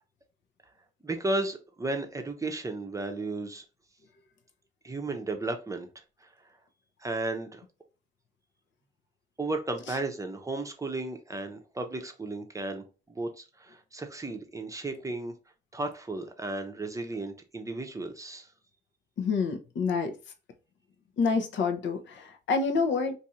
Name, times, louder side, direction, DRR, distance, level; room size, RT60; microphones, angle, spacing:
voice 1, 1.0-3.6 4.8-5.9 6.2-6.3 7.0-7.6 9.4-15.3 15.7-18.5, right 2 dB, 15° right, 0.7 m, -34 dB
voice 2, 19.2-20.1 21.2-23.2, left 4 dB, 65° left, 0.8 m, -27 dB
2.6 x 2.6 x 4.2 m
cardioid pair, 90°, 20 cm